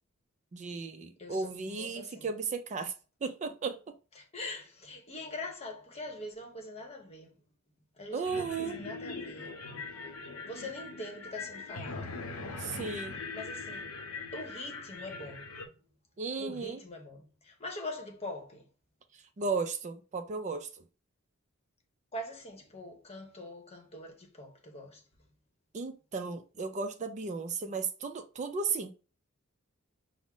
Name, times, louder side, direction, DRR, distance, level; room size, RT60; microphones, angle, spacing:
voice 1, 0.5-2.9 3.2-3.8 8.1-8.8 12.6-13.1 16.2-16.8 19.4-20.7 25.7-28.9, right 4 dB, 35° right, 0.4 m, -35 dB
voice 2, 1.2-2.3 4.2-7.3 8.0-9.6 10.4-12.1 13.3-13.9 14.3-15.5 16.4-18.7 22.1-25.0, left 1 dB, 30° left, 0.9 m, -43 dB
sound 1, 8.2-15.7, left 3 dB, 85° left, 0.7 m, -41 dB
6.1 x 2.0 x 3.6 m
head